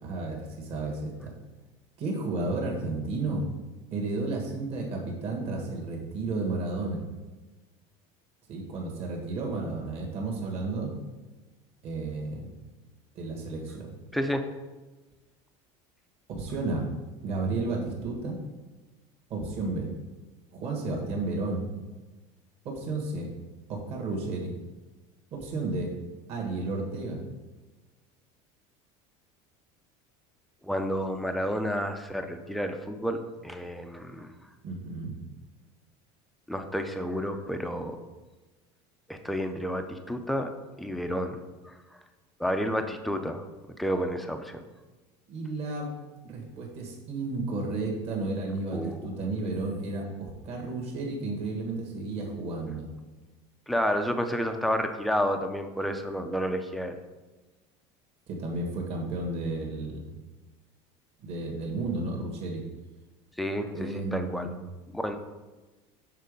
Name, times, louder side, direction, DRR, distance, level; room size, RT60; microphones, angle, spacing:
voice 1, 0.0-1.4 2.0-3.4 3.9-7.0 8.5-10.9 11.8-12.5 13.1-13.9 16.3-16.9 17.2-18.4 19.3-19.9 20.5-21.7 22.6-23.3 23.7-24.6 25.3-25.9 26.3-27.2 34.6-35.1 45.3-45.9 46.2-52.9 58.3-60.1 61.2-62.6 63.7-64.6, right 3 dB, 45° right, 0 dB, 1.6 m, -32 dB
voice 2, 14.1-14.4 30.6-34.3 36.5-38.0 39.1-40.5 40.8-41.8 42.4-43.4 43.8-44.6 48.7-49.0 53.7-56.9 63.4-64.5 64.9-65.2, equal, ahead, 6 dB, 0.4 m, -30 dB
6.7 x 4.0 x 5.2 m, 1.2 s
cardioid pair, 160°, 15 cm